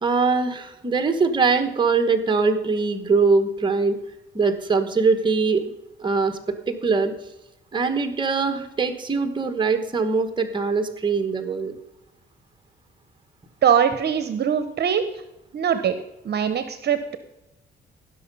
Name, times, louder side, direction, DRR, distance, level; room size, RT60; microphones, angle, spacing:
voice 1, 0.0-4.0 4.3-5.6 6.0-6.4 6.7-7.1 7.7-11.7, right 4 dB, 25° right, 7 dB, 1.2 m, -22 dB
voice 2, 13.6-15.1 15.5-16.0 16.2-17.2, right 8 dB, 55° right, 10 dB, 0.9 m, -22 dB
16.5 x 6.3 x 5.4 m, 0.90 s
cardioid pair, 90°, 20 cm